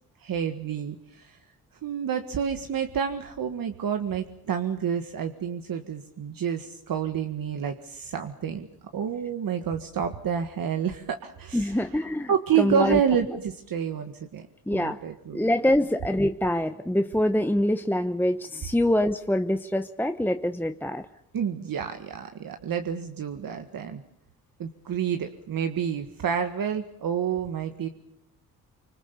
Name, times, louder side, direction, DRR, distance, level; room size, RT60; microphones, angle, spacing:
voice 1, 0.2-1.4 1.8-8.7 8.9-15.4 21.3-24.0 24.6-27.9, right 7 dB, 65° right, 6 dB, 1.8 m, -29 dB
voice 2, 11.5-12.3 12.6-13.0 14.7-15.0 15.3-21.1, left 1 dB, 5° left, 8 dB, 1.1 m, -25 dB
26.0 x 25.0 x 7.1 m, 0.73 s
cardioid pair, 75°, 37 cm